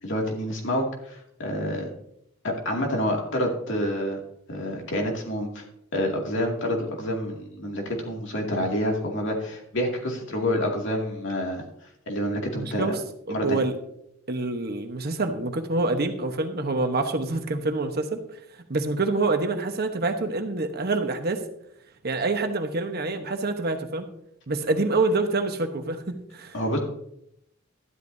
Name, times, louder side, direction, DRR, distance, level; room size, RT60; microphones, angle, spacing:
voice 1, 0.0-1.9 2.4-4.2 4.5-5.6 5.9-11.6 12.1-12.9 13.3-13.6 26.5-26.8, equal, 60° left, 0 dB, 2.4 m, -28 dB
voice 2, 12.5-13.0 13.3-13.7 14.3-18.2 18.7-21.4 22.0-24.1 24.5-26.5, right 3 dB, 50° right, 6 dB, 1.1 m, -26 dB
12.5 x 11.5 x 2.7 m, 0.76 s
head